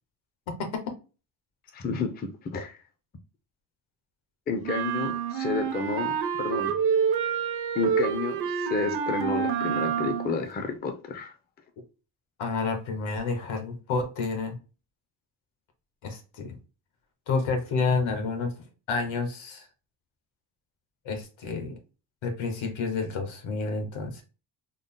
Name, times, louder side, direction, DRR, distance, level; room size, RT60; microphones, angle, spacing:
voice 1, 1.7-2.8 4.5-6.8 7.7-11.3, left 4 dB, 20° left, 0.4 m, -31 dB
sound 1, 4.6-10.4, right 7 dB, 55° right, 0.6 m, -28 dB
voice 2, 12.4-14.6 16.0-16.6 17.3-18.5 18.9-19.7 21.0-21.8 22.2-24.2, left 4 dB, 85° left, 1.2 m, -29 dB
3.8 x 2.0 x 3.6 m
cardioid pair, 145°, 47 cm